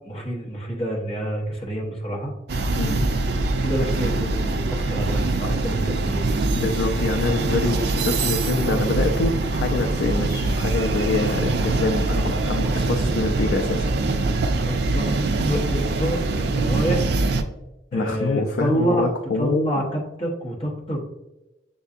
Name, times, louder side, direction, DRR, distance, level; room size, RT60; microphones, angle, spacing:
voice 1, 0.0-2.3 3.6-6.3 7.6-7.8 8.6-8.9 14.7-15.1 15.4-17.1 17.9-21.0, right 1 dB, 30° left, -2 dB, 1.0 m, -27 dB
sound 1, 2.5-17.4, right 2 dB, 60° right, 0.4 m, -23 dB
voice 2, 6.6-13.9 17.9-19.8, left 3 dB, 70° left, 3 dB, 0.4 m, -25 dB
6.9 x 2.7 x 2.4 m, 0.99 s
head